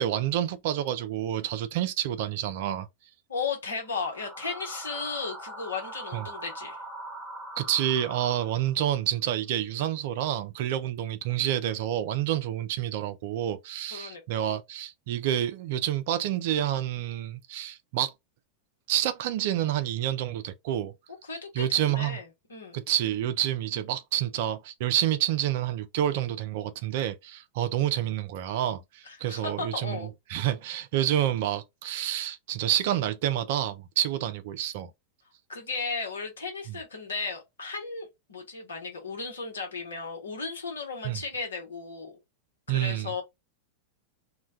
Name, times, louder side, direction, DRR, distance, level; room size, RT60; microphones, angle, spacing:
voice 1, 0.0-2.9 6.1-6.3 7.6-18.1 18.9-20.9 21.5-22.2 22.7-34.9 41.0-41.2 42.7-43.1, right 11 dB, 50° right, 0.4 m, -28 dB
voice 2, 3.3-6.8 13.9-14.5 21.2-22.2 22.5-22.8 29.0-30.1 35.5-42.2 42.7-43.2, left 4 dB, 70° left, 1.0 m, -35 dB
sound 1, 3.8-8.9, right 1 dB, 10° right, 1.0 m, -42 dB
2.2 x 2.2 x 3.7 m
figure-of-eight pair, 90°, 0 cm